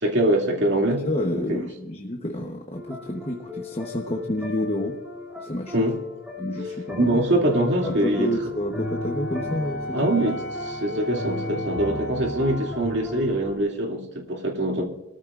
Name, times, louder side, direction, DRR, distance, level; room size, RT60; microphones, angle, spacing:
voice 1, 0.0-1.1 1.3-1.6 5.7-6.0 7.0-8.3 9.9-14.8, right 1 dB, 55° right, 1 dB, 2.6 m, -23 dB
voice 2, 1.0-5.0 5.4-5.8 6.4-7.2 7.8-10.1, left 1 dB, 30° left, 2 dB, 1.1 m, -29 dB
sound 1, 2.7-13.6, left 2 dB, 5° right, 2.8 m, -35 dB
Wind instrument woodwind instrument, 8.8-12.9, right 1 dB, 75° left, 2.0 m, -35 dB
23.0 x 14.0 x 2.5 m, 0.97 s
head